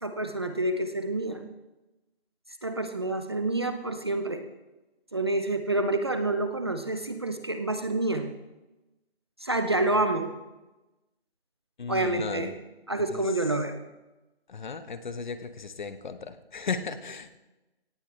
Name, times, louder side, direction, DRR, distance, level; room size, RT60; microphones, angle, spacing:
voice 1, 0.0-1.5 2.6-4.4 5.1-8.3 9.4-10.3 11.9-12.5 12.9-13.8, right 2 dB, 25° right, 7 dB, 0.6 m, -28 dB
voice 2, 11.8-12.6 13.1-13.3 14.5-17.4, left 5 dB, 45° left, 11 dB, 1.1 m, -35 dB
18.0 x 14.5 x 3.3 m, 1.1 s
figure-of-eight pair, 165°, 32 cm